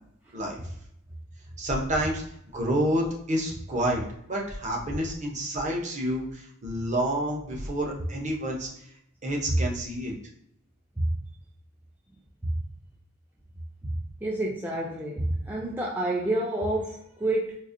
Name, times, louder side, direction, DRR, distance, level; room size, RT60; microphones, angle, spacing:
voice 1, 1.6-2.2 2.5-8.7 9.2-10.1, right 1 dB, 35° right, 0 dB, 0.7 m, -29 dB
voice 2, 14.2-17.6, right 1 dB, 10° right, -4 dB, 0.4 m, -28 dB
4.1 x 2.4 x 2.5 m, 0.76 s
head